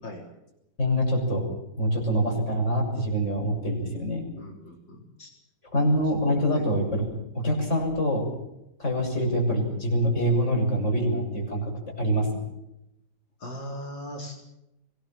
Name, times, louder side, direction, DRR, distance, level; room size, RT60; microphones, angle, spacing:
voice 1, 0.8-1.4 1.8-4.2 5.7-7.1 7.3-8.3 8.8-11.7 12.0-12.3, equal, 40° left, 1 dB, 7.6 m, -25 dB
voice 2, 4.4-5.3 5.7-6.0 6.5-6.7 13.4-14.3, equal, 75° left, -1 dB, 4.8 m, -39 dB
25.0 x 20.0 x 7.5 m, 0.86 s
omnidirectional pair, 2.0 m